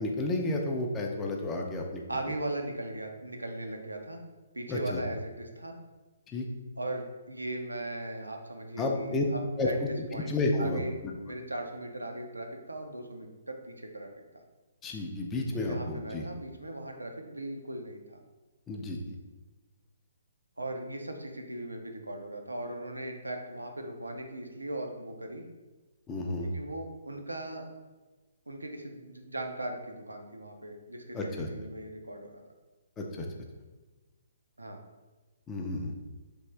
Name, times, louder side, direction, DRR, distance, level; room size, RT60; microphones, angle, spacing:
voice 1, 0.0-2.0 4.7-5.0 6.3-6.5 8.8-9.2 9.6-11.1 14.8-16.3 18.7-19.2 26.1-26.5 31.1-31.5 33.0-33.3 35.5-35.9, left 2 dB, 15° left, 1 dB, 0.4 m, -31 dB
voice 2, 2.1-4.2 4.5-5.8 6.8-14.1 15.7-18.2 20.6-25.4 26.4-27.7 28.5-32.4 34.6-34.8, right 1 dB, 90° right, 4 dB, 0.4 m, -38 dB
3.4 x 2.4 x 3.2 m, 1.2 s
figure-of-eight pair, 130°, 0 cm